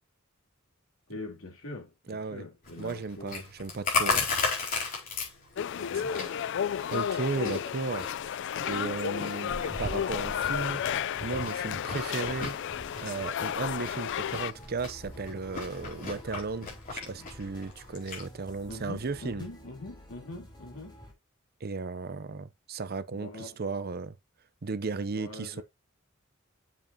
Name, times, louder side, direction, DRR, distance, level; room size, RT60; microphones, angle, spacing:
voice 1, 1.1-3.5 5.7-6.2 18.7-21.0 23.1-23.6 25.1-25.6, left 2 dB, 80° left, 3.1 m, -43 dB
voice 2, 2.1-2.4 2.8-4.3 6.9-8.1 8.7-12.6 13.0-19.4 21.6-24.2 24.6-25.6, right 4 dB, 50° right, 0.6 m, -35 dB
Chewing mastication, 2.6-18.2, left 4 dB, 45° left, 4.6 m, -36 dB
sound 1, 5.6-14.5, left 8 dB, 60° left, 0.4 m, -32 dB
sound 2, 14.2-21.1, equal, 20° left, 3.3 m, -51 dB
7.6 x 7.2 x 2.8 m
head